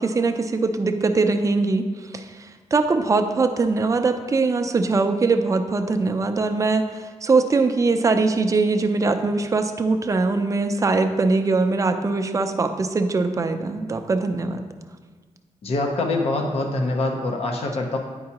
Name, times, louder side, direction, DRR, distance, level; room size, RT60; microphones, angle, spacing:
voice 1, 0.0-14.7, right 3 dB, 25° right, 6 dB, 0.4 m, -22 dB
voice 2, 15.6-18.0, left 2 dB, 55° left, 2 dB, 0.7 m, -24 dB
9.5 x 4.6 x 2.9 m, 1.4 s
wide cardioid pair, 135°, 12 cm